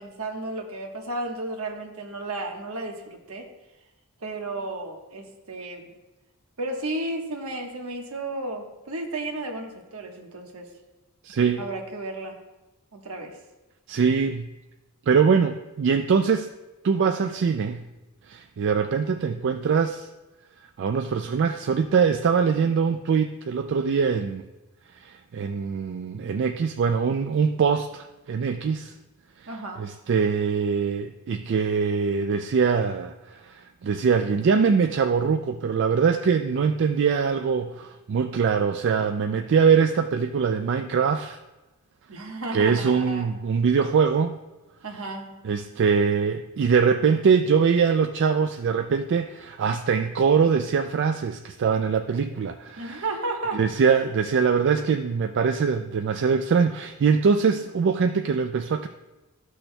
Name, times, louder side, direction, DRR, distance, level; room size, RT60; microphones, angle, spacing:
voice 1, 0.0-3.4 4.2-5.9 6.6-10.7 11.6-12.4 12.9-13.4 29.5-29.8 42.1-43.3 44.8-45.4 52.8-53.6, right 2 dB, 75° right, 2 dB, 1.2 m, -33 dB
voice 2, 11.2-11.6 13.9-14.5 15.1-16.5 16.8-17.8 18.3-20.1 20.8-24.5 25.0-28.9 29.8-41.4 42.5-44.4 45.4-53.0 53.5-58.9, right 6 dB, 55° right, 6 dB, 0.4 m, -23 dB
13.5 x 6.3 x 2.2 m, 1.1 s
head